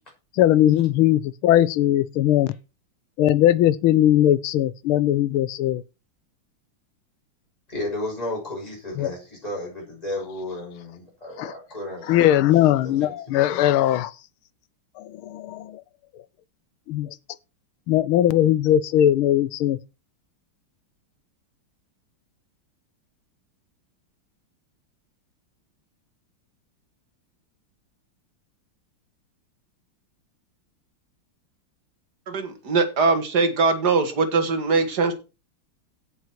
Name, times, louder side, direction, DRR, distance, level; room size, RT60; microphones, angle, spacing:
voice 1, 0.4-2.5 3.2-5.8 9.0-9.1 11.4-11.5 12.1-14.1 15.0-15.8 16.9-17.1 17.9-19.8, left 12 dB, 85° left, 1.6 m, -19 dB
voice 2, 7.7-12.2 12.5-14.0, left 1 dB, 15° left, 7.2 m, -34 dB
voice 3, 32.3-35.1, right 4 dB, 50° right, 2.4 m, -21 dB
16.5 x 6.4 x 4.6 m
omnidirectional pair, 2.3 m